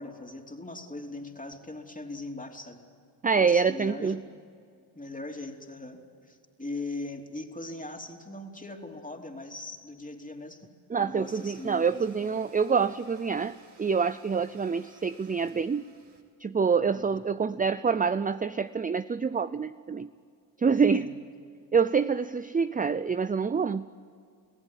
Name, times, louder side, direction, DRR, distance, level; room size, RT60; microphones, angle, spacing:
voice 1, 0.0-2.8 3.4-4.2 4.9-10.7 11.0-12.3 16.9-17.2 20.7-21.1, left 2 dB, 15° left, 3 dB, 3.2 m, -40 dB
voice 2, 3.2-4.2 10.9-15.9 16.4-20.1 20.6-21.1 21.7-23.8, right 5 dB, 20° right, 14 dB, 0.5 m, -26 dB
Domestic sounds home sounds, 11.2-16.2, right 4 dB, 55° right, 3.5 m, -58 dB
25.5 x 16.0 x 9.2 m, 2.2 s
cardioid pair, 55°, 47 cm